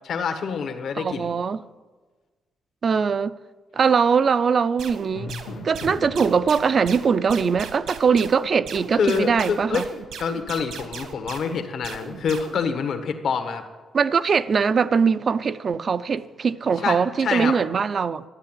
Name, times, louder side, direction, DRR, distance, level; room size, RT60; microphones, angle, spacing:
voice 1, 0.0-1.3 8.9-9.8 10.2-13.6 16.8-17.6, left 6 dB, 65° left, 1.5 m, -26 dB
voice 2, 1.0-1.6 2.8-3.3 3.7-5.3 5.6-9.9 13.9-18.2, right 6 dB, 45° right, 0.5 m, -21 dB
sound 1, 4.8-12.6, right 6 dB, 75° right, 1.7 m, -38 dB
Drum, 5.1-7.2, left 4 dB, 85° left, 1.7 m, -38 dB
13.0 x 11.0 x 9.1 m
cardioid pair, 125°, 0 cm